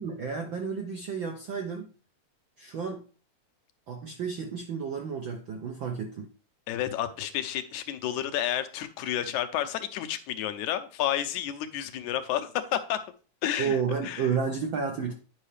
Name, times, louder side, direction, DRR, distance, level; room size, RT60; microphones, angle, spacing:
voice 1, 0.0-1.9 2.6-3.1 3.9-6.3 13.6-15.1, right 6 dB, 75° right, 1.1 m, -31 dB
voice 2, 6.7-13.0 13.4-13.8 14.0-14.3, left 11 dB, 85° left, 2.1 m, -30 dB
9.9 x 5.5 x 3.3 m
omnidirectional pair, 3.3 m